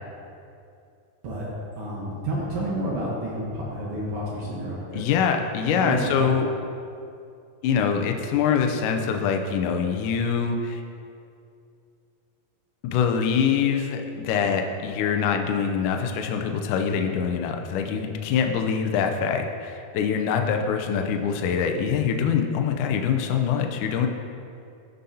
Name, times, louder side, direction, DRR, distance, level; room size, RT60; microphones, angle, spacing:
voice 1, 1.7-5.1 5.6-6.3, right 1 dB, 70° right, -5 dB, 1.4 m, -30 dB
voice 2, 4.9-6.5 7.6-10.8 12.8-24.1, left 7 dB, 80° left, 4 dB, 1.8 m, -24 dB
15.0 x 5.5 x 2.8 m, 2.5 s
omnidirectional pair, 4.3 m